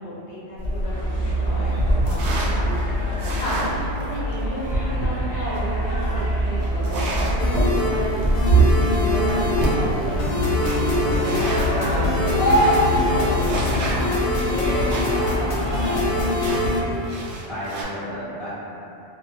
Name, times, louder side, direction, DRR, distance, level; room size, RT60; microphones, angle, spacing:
voice 1, 0.0-1.7 2.0-8.2 8.8-13.9 15.2-16.0, equal, 85° left, -6 dB, 1.0 m, -33 dB
sound 1, 0.6-11.7 12.2-12.3 12.4-15.3 15.6-15.7 16.4-17.8, right 2 dB, 80° right, 0.9 m, -26 dB
sound 2, 0.8-16.2, right 1 dB, 30° left, 0.3 m, -25 dB
voice 2, 1.4-2.0 9.1-9.7 17.3-18.5, equal, 30° right, -14 dB, 0.6 m, -35 dB
sound 3, 7.4-16.8, left 2 dB, 65° left, 0.7 m, -24 dB
2.4 x 2.1 x 2.7 m, 2.8 s
omnidirectional pair, 1.1 m